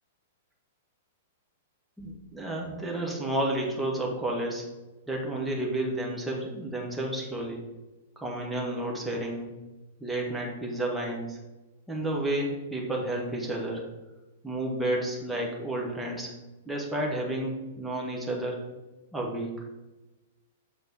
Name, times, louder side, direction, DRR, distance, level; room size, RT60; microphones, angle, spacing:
voice 1, 2.0-4.6 5.1-7.6 8.2-9.5 10.0-11.4 11.9-13.8 14.4-16.3 16.7-18.6 19.1-19.7, right 1 dB, 5° right, -3 dB, 1.4 m, -31 dB
7.1 x 4.1 x 5.2 m, 1.1 s
figure-of-eight pair, 105°, 0 cm